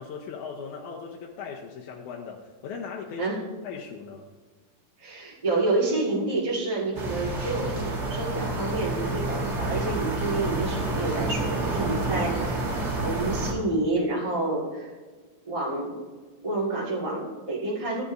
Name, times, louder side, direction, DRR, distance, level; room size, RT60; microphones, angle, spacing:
voice 1, 0.0-4.3, left 5 dB, 75° left, -2 dB, 2.2 m, -39 dB
voice 2, 5.0-14.9 15.4-16.0 16.4-18.0, right 2 dB, 20° right, -5 dB, 0.9 m, -29 dB
sound 1, 6.9-13.5, right 2 dB, 40° right, 1.5 m, -29 dB
15.5 x 9.0 x 2.6 m, 1.4 s
omnidirectional pair, 3.8 m